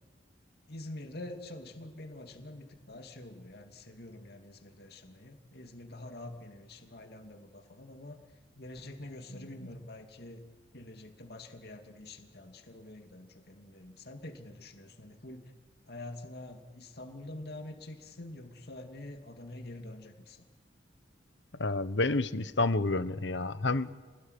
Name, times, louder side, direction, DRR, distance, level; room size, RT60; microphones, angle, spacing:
voice 1, 0.7-8.2 8.6-10.4 10.7-15.4 15.9-20.4, left 1 dB, 60° left, 4 dB, 2.7 m, -46 dB
voice 2, 21.6-23.9, left 2 dB, 75° left, 13 dB, 1.2 m, -29 dB
28.5 x 20.0 x 10.0 m, 1.4 s
head